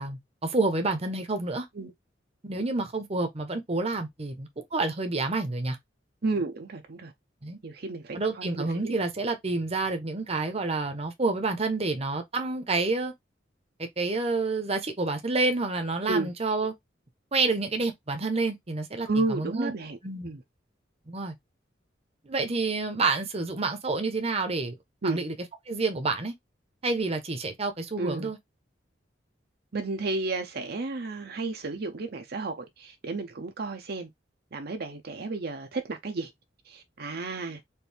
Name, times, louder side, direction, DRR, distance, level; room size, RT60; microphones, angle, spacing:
voice 1, 0.0-1.7 2.4-5.8 7.4-7.6 8.1-13.1 13.8-16.7 17.3-19.7 20.0-20.3 21.1-21.3 22.2-24.8 25.0-25.3 25.7-26.3 26.8-28.4, right 3 dB, 35° right, 0.9 m, -28 dB
voice 2, 6.2-7.1 7.6-9.0 16.1-16.3 19.1-20.0 20.2-20.4 25.0-25.2 28.0-28.3 29.7-34.1 34.5-36.3 36.7-37.6, right 3 dB, 60° right, 0.7 m, -32 dB
4.5 x 2.7 x 3.4 m
head